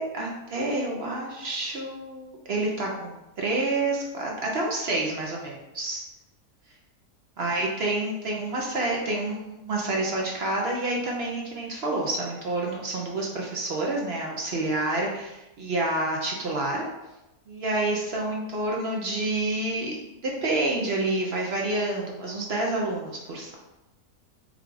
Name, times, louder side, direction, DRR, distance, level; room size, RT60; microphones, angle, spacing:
voice 1, 0.0-6.0 7.4-16.8 17.5-20.0 20.2-23.6, right 2 dB, 60° right, -1 dB, 0.6 m, -28 dB
3.7 x 2.4 x 4.6 m, 0.97 s
omnidirectional pair, 1.7 m